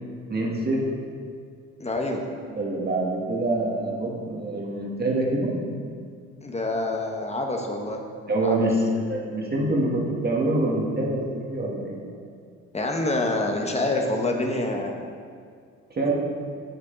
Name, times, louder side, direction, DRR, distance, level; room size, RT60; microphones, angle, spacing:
voice 1, 0.3-0.9 2.5-5.6 8.3-12.0 15.9-16.1, right 1 dB, 35° right, -2 dB, 1.8 m, -25 dB
voice 2, 1.8-2.3 6.4-8.0 8.4-8.6 12.7-15.0, left 2 dB, 20° left, 2 dB, 1.1 m, -26 dB
7.4 x 7.1 x 3.9 m, 2.1 s
supercardioid pair, 75°, 29 cm